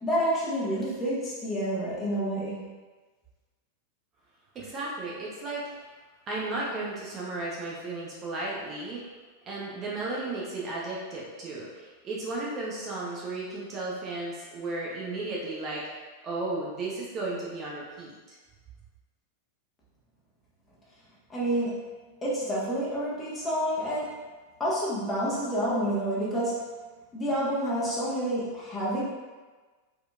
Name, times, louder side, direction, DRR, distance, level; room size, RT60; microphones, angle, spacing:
voice 1, 0.0-2.7 21.3-21.8 22.2-24.1 24.6-26.6 27.1-29.1, equal, 15° left, -7 dB, 1.4 m, -28 dB
voice 2, 4.5-5.9 6.3-9.0 9.5-15.8 16.2-18.4, right 2 dB, 30° right, -5 dB, 0.9 m, -34 dB
5.0 x 4.1 x 2.4 m, 1.3 s
figure-of-eight pair, 90°, 0 cm